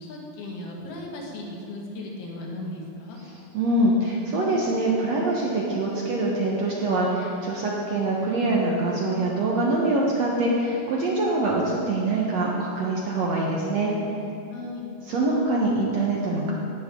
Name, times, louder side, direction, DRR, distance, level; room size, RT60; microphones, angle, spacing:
voice 1, 0.0-3.2 14.5-14.8, left 1 dB, 80° left, -1 dB, 3.7 m, -36 dB
voice 2, 3.2-13.9 15.1-16.5, right 2 dB, 65° right, -3 dB, 1.8 m, -24 dB
17.5 x 11.0 x 3.7 m, 2.6 s
omnidirectional pair, 4.4 m